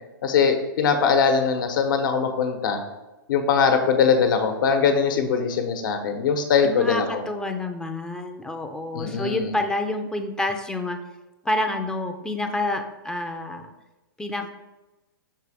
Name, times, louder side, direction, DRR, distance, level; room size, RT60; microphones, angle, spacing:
voice 1, 0.2-2.8 3.3-7.2 8.9-9.5, left 6 dB, 65° left, 5 dB, 1.1 m, -21 dB
voice 2, 6.6-11.0 11.4-13.7 14.2-14.5, left 2 dB, 5° left, 4 dB, 0.5 m, -28 dB
6.6 x 4.1 x 5.0 m, 1.1 s
hypercardioid pair, 125°, 12 cm